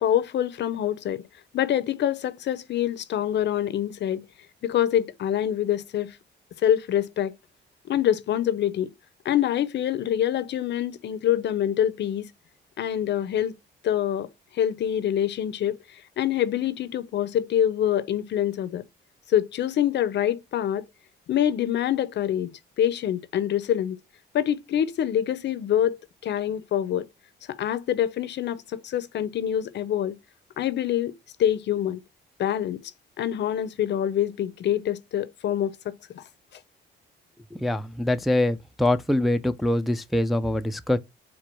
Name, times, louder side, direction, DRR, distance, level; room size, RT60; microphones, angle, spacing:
voice 1, 0.0-1.2 1.5-4.3 4.6-6.2 6.6-7.3 7.8-8.9 9.2-12.3 12.8-13.5 13.8-14.3 14.5-18.8 19.3-20.9 21.3-24.0 24.3-27.1 27.5-30.1 30.6-31.1 31.4-32.0 32.4-32.9 33.2-36.2, left 10 dB, 60° left, 0.6 m, -25 dB
voice 2, 37.6-41.0, left 1 dB, ahead, 0.3 m, -24 dB
4.5 x 2.2 x 4.3 m
cardioid pair, 90°, 20 cm